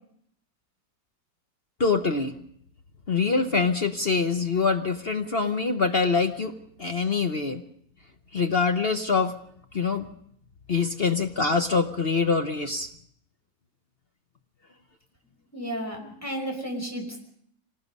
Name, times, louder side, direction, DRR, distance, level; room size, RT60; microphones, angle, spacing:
voice 1, 1.8-2.3 3.1-7.6 8.3-9.4 9.7-10.1 10.7-12.9, left 4 dB, 40° left, 6 dB, 0.9 m, -24 dB
voice 2, 15.5-17.2, right 1 dB, 10° left, 2 dB, 5.4 m, -33 dB
25.0 x 19.0 x 5.4 m, 0.69 s
omnidirectional pair, 2.0 m